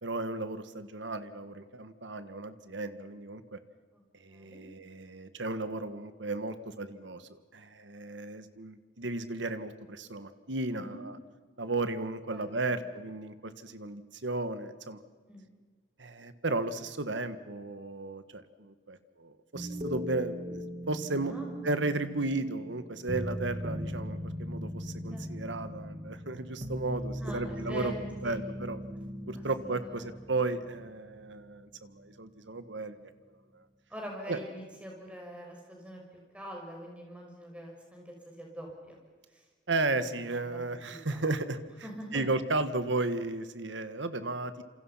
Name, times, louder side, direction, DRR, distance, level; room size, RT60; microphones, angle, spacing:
voice 1, 0.0-3.6 4.2-11.2 11.6-15.0 16.0-21.3 21.6-27.9 28.2-28.8 29.3-33.0 33.5-33.6 34.3-34.4 39.7-41.6 42.1-44.6, right 2 dB, 80° right, 11 dB, 1.7 m, -34 dB
voice 2, 4.3-4.6 10.7-11.0 12.3-12.9 15.3-15.5 21.3-21.5 25.1-25.3 27.2-28.4 29.4-30.2 33.9-36.0 36.3-39.0 39.3-39.4 39.9-41.2 41.8-42.2, equal, 5° right, 0 dB, 6.2 m, -44 dB
sound 1, 19.5-31.6 31.9-32.0, equal, 35° right, 2.7 m, -39 dB
28.0 x 27.5 x 5.8 m, 1.4 s
head